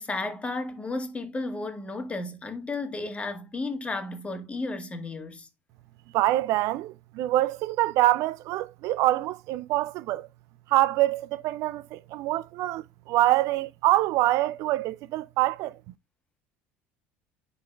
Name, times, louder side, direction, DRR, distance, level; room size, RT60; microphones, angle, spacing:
voice 1, 0.0-5.5, left 2 dB, 20° left, 1.7 m, -33 dB
voice 2, 6.1-10.3 10.7-15.8, right 16 dB, 65° right, 0.4 m, -25 dB
10.0 x 3.9 x 2.4 m
hypercardioid pair, 75°, 6 cm